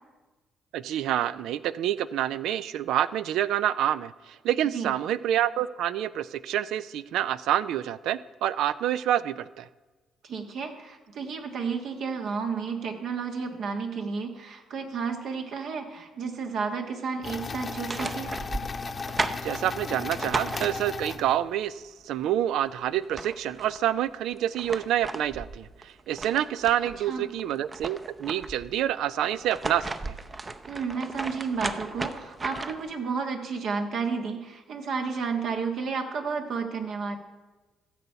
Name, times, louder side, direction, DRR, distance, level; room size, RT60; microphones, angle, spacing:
voice 1, 0.7-9.7 19.4-30.2, right 11 dB, 85° right, 16 dB, 0.3 m, -27 dB
voice 2, 10.2-18.3 27.1-27.3 30.7-37.2, right 5 dB, 70° right, 4 dB, 1.4 m, -32 dB
sound 1, 17.2-21.6, left 4 dB, 35° left, 0.8 m, -35 dB
sound 2, 17.6-21.2 22.6-22.7 23.0-23.8 24.3-27.0 27.4-28.7 29.3-32.9, right 3 dB, 30° right, 0.6 m, -35 dB
15.0 x 6.9 x 5.7 m, 1.2 s
cardioid pair, 90°, 0 cm